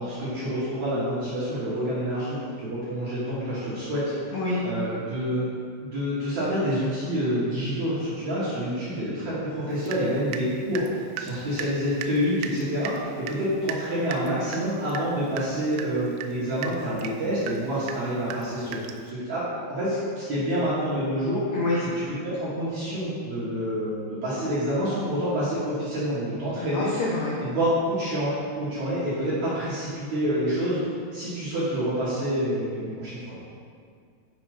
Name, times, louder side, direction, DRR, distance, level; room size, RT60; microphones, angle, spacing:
voice 1, 0.0-4.4 4.6-5.5 5.8-21.4 22.2-26.9 27.4-30.8 31.1-33.4, equal, 55° right, -11 dB, 2.1 m, -27 dB
Water tap faucet / Drip, 9.9-10.5 10.7-19.1, right 7 dB, 85° right, 2.9 m, -38 dB
voice 2, 21.5-21.8 26.6-27.4, left 2 dB, 80° left, -5 dB, 1.9 m, -27 dB
7.7 x 5.0 x 4.9 m, 2.2 s
omnidirectional pair, 5.2 m